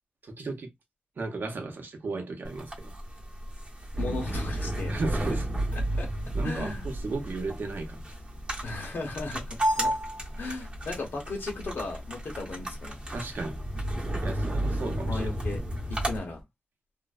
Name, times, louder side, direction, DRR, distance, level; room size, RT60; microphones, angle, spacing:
voice 1, 0.3-0.7 1.2-2.9 4.9-5.5 6.3-8.0 13.1-13.6 14.2-15.2, right 3 dB, 65° right, 0.7 m, -35 dB
sound 1, 2.4-16.2, right 1 dB, 30° right, 0.8 m, -32 dB
voice 2, 4.0-4.9 5.7-6.1 6.4-6.9 8.6-10.0 10.4-13.0 15.1-15.6 15.9-16.4, left 3 dB, 85° left, 0.9 m, -36 dB
sound 2, 4.6-16.4, left 2 dB, 20° left, 0.7 m, -48 dB
2.5 x 2.0 x 2.4 m
wide cardioid pair, 115°, 4 cm